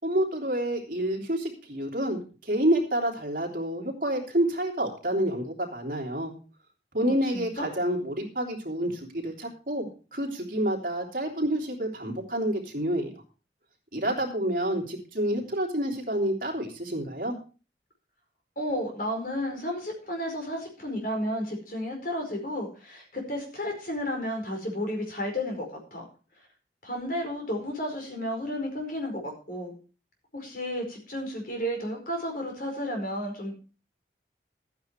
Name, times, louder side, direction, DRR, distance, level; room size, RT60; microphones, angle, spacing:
voice 1, 0.0-6.3 6.9-13.1 13.9-17.3, right 1 dB, 50° right, 1 dB, 3.2 m, -28 dB
voice 2, 7.0-7.7 18.6-26.0 26.8-29.7 30.3-33.5, equal, 50° left, 3 dB, 4.8 m, -32 dB
13.0 x 9.4 x 4.6 m, 0.35 s
head